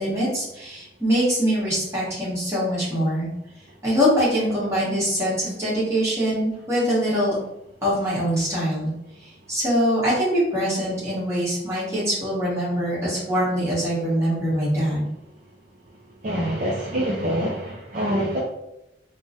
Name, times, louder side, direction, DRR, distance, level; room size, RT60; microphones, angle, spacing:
voice 1, 0.0-3.3 3.8-7.4 7.8-8.9 9.5-15.1, equal, 15° right, -8 dB, 1.3 m, -23 dB
voice 2, 16.2-18.4, equal, 45° right, -4 dB, 0.4 m, -25 dB
3.4 x 2.1 x 2.6 m, 0.85 s
head